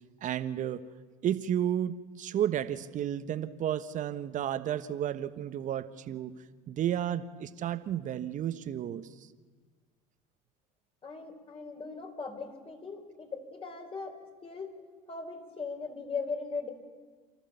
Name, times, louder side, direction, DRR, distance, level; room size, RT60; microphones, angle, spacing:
voice 1, 0.2-0.8 1.2-6.3 6.7-9.1, right 10 dB, 45° right, 12 dB, 1.3 m, -32 dB
voice 2, 11.0-14.8 15.1-16.7, left 4 dB, 30° left, 5 dB, 4.6 m, -39 dB
29.0 x 14.0 x 7.1 m, 1.4 s
hypercardioid pair, 70°, 18 cm